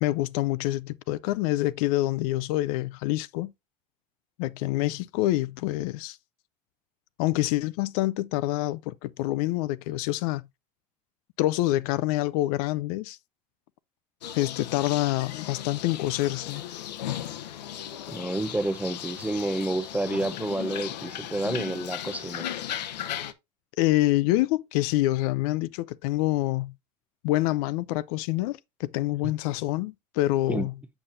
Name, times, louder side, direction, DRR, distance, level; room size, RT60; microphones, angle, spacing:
voice 1, 0.0-3.5 4.4-6.2 7.2-10.5 11.4-13.2 14.3-16.6 23.8-26.7 27.2-30.7, left 17 dB, 60° left, 0.5 m, -26 dB
sound 1, 14.2-23.3, left 11 dB, 90° left, 0.8 m, -36 dB
voice 2, 18.1-22.5 30.5-30.7, right 2 dB, 5° right, 0.6 m, -29 dB
7.2 x 6.9 x 2.5 m
hypercardioid pair, 105°, 21 cm